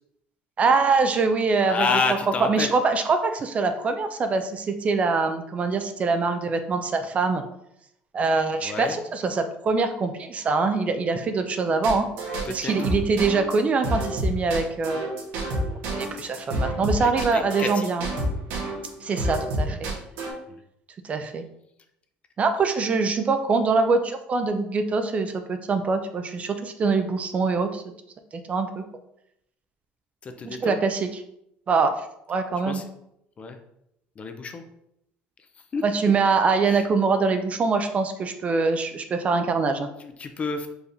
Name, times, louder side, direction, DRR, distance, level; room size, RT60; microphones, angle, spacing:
voice 1, 0.6-1.9 2.5-7.4 8.1-12.1 12.5-15.1 15.9-18.1 19.0-19.9 21.0-21.4 22.4-27.8 28.3-28.8 30.4-31.2 31.7-31.9 32.3-32.8 35.8-39.9, right 4 dB, 30° right, 8 dB, 0.4 m, -24 dB
voice 2, 1.6-2.7 8.6-9.0 12.5-12.7 17.0-17.9 30.2-30.8 32.7-32.8 33.4-33.6 34.2-34.6 35.7-35.8 36.7-36.8 40.0-40.7, left 4 dB, 30° left, 7 dB, 0.5 m, -29 dB
sound 1, 11.8-18.9 19.2-20.3, right 1 dB, 85° right, 1.2 m, -28 dB
4.7 x 3.4 x 2.6 m, 0.77 s
cardioid pair, 120°, 4 cm